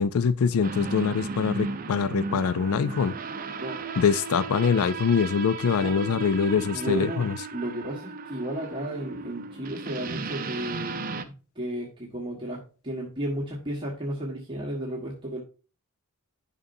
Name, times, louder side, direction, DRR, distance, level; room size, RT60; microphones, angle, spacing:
voice 1, 0.0-3.1 4.0-7.3, left 6 dB, 65° left, 0.4 m, -24 dB
sound 1, 0.6-11.2, right 3 dB, 40° right, 0.6 m, -35 dB
voice 2, 3.6-4.1 5.8-6.2 6.5-15.4, right 1 dB, 25° right, 1.5 m, -34 dB
11.0 x 5.5 x 2.7 m
head